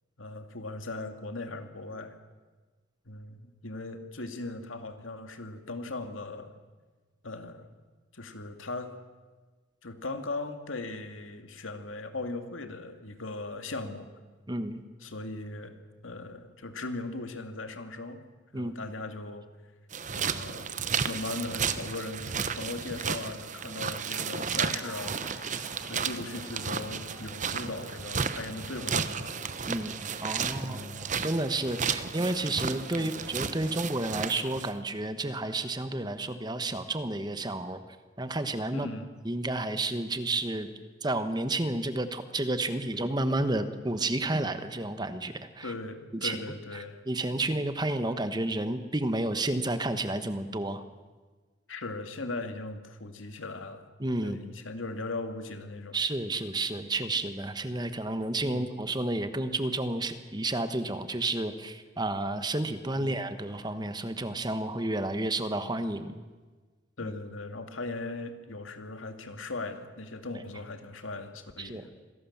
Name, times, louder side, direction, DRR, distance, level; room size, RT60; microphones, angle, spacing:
voice 1, 0.2-2.2 3.1-6.5 7.2-7.7 8.1-8.9 9.8-14.1 15.0-15.7 16.0-18.2 18.5-19.5 20.1-29.5 30.6-31.2 32.9-33.1 38.7-39.1 45.6-47.0 51.7-53.9 54.2-56.0 58.5-58.7 67.0-71.9, left 2 dB, 90° left, 7 dB, 2.2 m, -39 dB
voice 2, 14.5-14.8 18.5-18.7 29.7-30.8 31.2-37.8 38.2-38.9 39.2-40.7 41.0-45.7 46.1-46.4 47.1-50.8 54.0-54.4 55.9-66.2 71.6-71.8, right 2 dB, 20° right, 10 dB, 1.2 m, -31 dB
sound 1, 19.9-34.7, right 6 dB, 40° right, 0.9 m, -33 dB
sound 2, 24.1-34.5, left 1 dB, 15° left, 6.5 m, -52 dB
26.0 x 17.5 x 7.3 m, 1.3 s
head